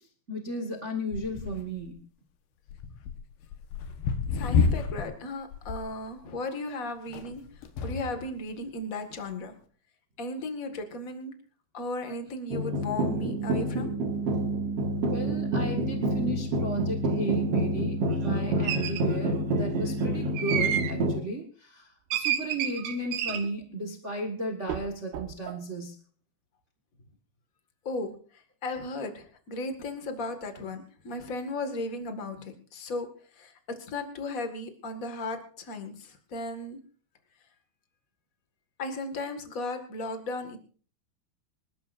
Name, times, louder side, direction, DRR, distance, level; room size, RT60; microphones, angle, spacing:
voice 1, 0.3-2.0 15.1-25.9, right 1 dB, 65° right, 2 dB, 0.7 m, -35 dB
sound 1, 1.1-1.9 2.7-5.2 5.5-6.0 7.1-8.3 9.1-9.2, left 5 dB, 90° left, 3.3 m, -30 dB
voice 2, 4.3-7.4 7.8-9.5 10.2-11.3 11.7-13.9 27.8-28.1 28.6-33.1 33.3-36.8 38.8-40.6, left 2 dB, 35° left, 6 dB, 1.4 m, -35 dB
sound 2, 12.5-21.2, right 1 dB, 50° right, 2.2 m, -28 dB
sound 3, 18.6-19.0 20.4-21.0 22.1-23.5 24.7-24.9 25.1-25.6, right 10 dB, 90° right, 3.3 m, -30 dB
26.5 x 13.0 x 2.6 m, 0.42 s
omnidirectional pair, 4.4 m